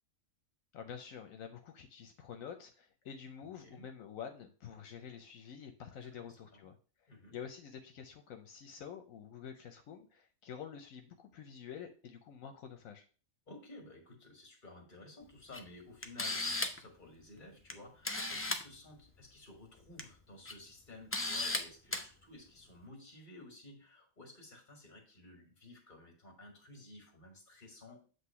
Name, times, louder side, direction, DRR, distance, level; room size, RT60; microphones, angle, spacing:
voice 1, 0.7-6.8 7.3-13.0, left 8 dB, 80° left, 5 dB, 1.1 m, -48 dB
voice 2, 6.2-6.7 7.1-7.4 13.5-28.0, left 2 dB, 35° left, 2 dB, 1.9 m, -54 dB
Camera, 15.5-15.6 16.0-16.9 17.7-17.8 18.0-18.6 19.8-20.0 20.5-20.6 21.1-21.6 21.9-22.0, left 2 dB, 20° left, 0.3 m, -35 dB
7.9 x 2.9 x 5.6 m, 0.38 s
omnidirectional pair, 1.4 m